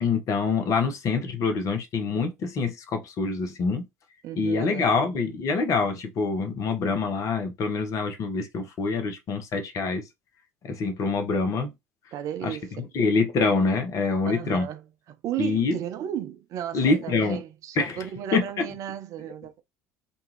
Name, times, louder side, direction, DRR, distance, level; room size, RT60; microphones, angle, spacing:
voice 1, 0.0-3.9 4.4-10.0 10.6-11.7 12.4-14.7 15.4-15.8 16.7-17.4 17.8-18.0 18.3-18.7, left 4 dB, 40° left, 0.8 m, -25 dB
voice 2, 4.2-5.0 12.1-12.9 14.3-19.6, right 10 dB, 45° right, 0.4 m, -35 dB
2.6 x 2.3 x 3.1 m
figure-of-eight pair, 60°, 8 cm